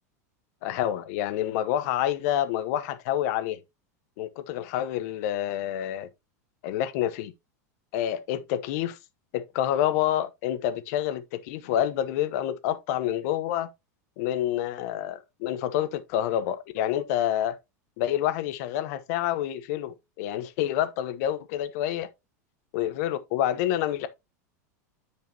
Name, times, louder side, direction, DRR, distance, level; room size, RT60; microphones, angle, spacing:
voice 1, 0.6-3.6 4.2-6.1 6.6-7.3 7.9-9.0 9.3-13.7 14.2-17.6 18.0-22.1 22.7-24.1, left 11 dB, 65° left, 0.9 m, -28 dB
9.5 x 5.0 x 2.8 m
hypercardioid pair, 105°, 9 cm